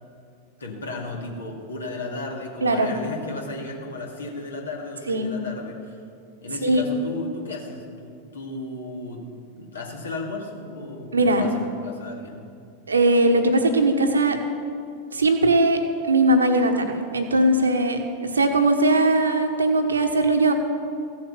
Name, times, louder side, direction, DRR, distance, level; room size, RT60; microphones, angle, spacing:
voice 1, 0.6-6.0 6.4-9.2 9.6-12.4, left 3 dB, 70° left, 0 dB, 2.2 m, -34 dB
voice 2, 11.1-11.4 12.9-14.4 15.1-15.8 16.0-18.0 18.3-20.5, right 2 dB, 75° right, 6 dB, 1.3 m, -19 dB
15.5 x 7.3 x 7.0 m, 2.4 s
figure-of-eight pair, 90°, 0 cm